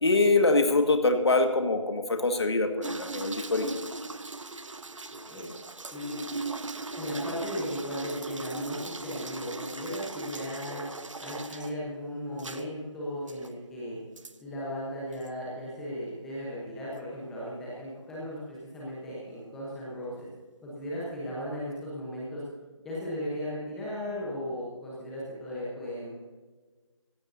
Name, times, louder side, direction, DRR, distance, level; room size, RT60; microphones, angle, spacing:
voice 1, 0.0-3.7, left 2 dB, 55° left, 5 dB, 1.8 m, -24 dB
sound 1, 2.8-11.7 12.4-12.6 13.3-13.5 14.2-14.4 15.1-15.3, right 3 dB, 75° right, 1.1 m, -38 dB
voice 2, 7.0-10.8 11.2-14.0 14.4-20.3 20.6-22.4 22.8-26.2, equal, ahead, -7 dB, 1.0 m, -36 dB
17.0 x 16.5 x 2.7 m, 1.3 s
figure-of-eight pair, 170°, 16 cm